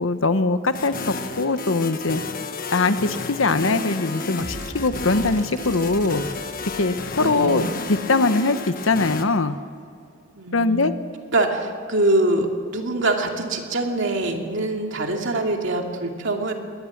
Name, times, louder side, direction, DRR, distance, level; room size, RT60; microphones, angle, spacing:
voice 1, 0.0-2.2 2.7-6.3 6.8-7.6 7.9-9.6 10.5-10.9, left 3 dB, 75° left, 11 dB, 1.1 m, -21 dB
sound 1, 0.7-9.3, left 3 dB, 45° left, 1.4 m, -32 dB
sound 2, 4.4-8.5, right 1 dB, 40° right, 1.3 m, -40 dB
voice 2, 7.2-7.6 10.3-10.9 11.3-16.5, right 2 dB, 65° right, 3 dB, 2.6 m, -24 dB
22.0 x 19.0 x 7.4 m, 2.4 s
head